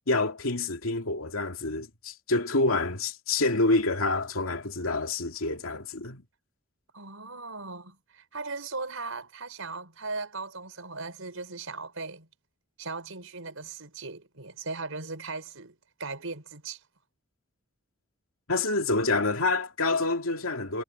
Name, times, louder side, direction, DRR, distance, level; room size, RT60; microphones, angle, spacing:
voice 1, 0.1-6.2 18.5-20.8, left 2 dB, 85° left, 2.4 m, -27 dB
voice 2, 6.9-12.3 12.8-16.8, right 3 dB, 75° right, 5.3 m, -38 dB
head